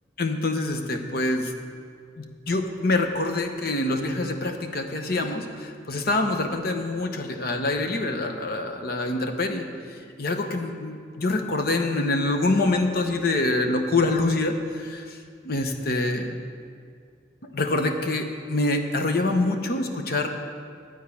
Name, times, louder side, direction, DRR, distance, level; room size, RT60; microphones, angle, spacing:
voice 1, 0.2-1.5 2.2-9.7 10.2-15.2 15.4-16.4 17.5-20.3, left 2 dB, 55° left, 5 dB, 0.8 m, -25 dB
11.5 x 4.5 x 8.4 m, 2.2 s
head